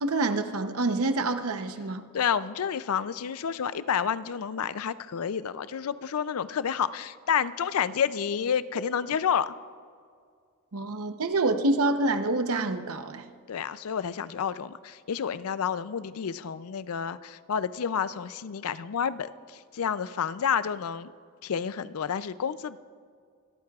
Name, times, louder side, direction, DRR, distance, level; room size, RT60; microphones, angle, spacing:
voice 1, 0.0-2.0 10.7-13.3, right 2 dB, 75° right, 8 dB, 0.8 m, -27 dB
voice 2, 2.1-9.5 13.5-21.1 21.4-22.8, left 7 dB, 80° left, 15 dB, 0.4 m, -29 dB
25.0 x 13.5 x 2.4 m, 2.2 s
head